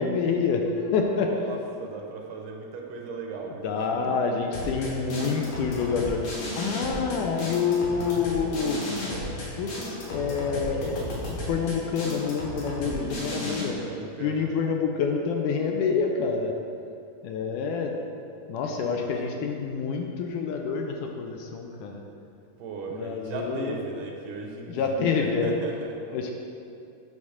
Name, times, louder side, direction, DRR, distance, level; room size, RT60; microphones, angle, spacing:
voice 1, 0.0-1.3 3.6-8.9 9.6-13.8 14.2-16.5 17.2-17.9 18.5-22.0 22.9-23.8 24.7-25.5 26.1-26.3, left 5 dB, 80° left, 2 dB, 2.1 m, -27 dB
voice 2, 1.1-4.3 12.8-14.5 18.6-19.4 22.6-26.3, right 4 dB, 75° right, 1 dB, 2.3 m, -38 dB
sound 1, 4.5-13.6, left 1 dB, 65° left, 3.0 m, -34 dB
9.4 x 3.6 x 6.4 m, 2.6 s
omnidirectional pair, 3.8 m